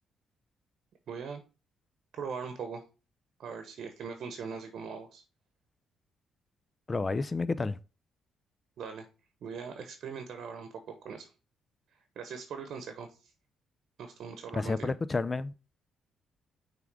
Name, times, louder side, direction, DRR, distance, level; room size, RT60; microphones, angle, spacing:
voice 1, 1.1-1.4 2.2-2.8 3.4-5.2 8.8-9.1 9.4-11.3 12.2-13.3 14.0-14.9, right 6 dB, 65° right, 0.9 m, -40 dB
voice 2, 6.9-7.8 14.5-15.5, left 3 dB, 25° left, 0.4 m, -30 dB
5.9 x 3.6 x 4.7 m
cardioid pair, 90°, 0 cm